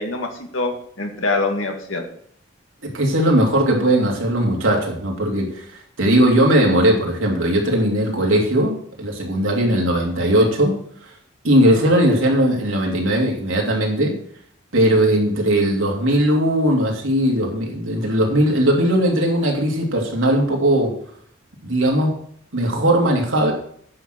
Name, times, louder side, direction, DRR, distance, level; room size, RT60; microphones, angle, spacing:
voice 1, 0.0-2.0, left 3 dB, 85° left, 4 dB, 1.9 m, -24 dB
voice 2, 2.9-5.6 6.0-10.8 11.4-14.2 14.7-20.9 21.6-22.2 22.5-23.5, right 1 dB, 85° right, -1 dB, 2.9 m, -18 dB
9.6 x 6.2 x 6.3 m, 0.63 s
head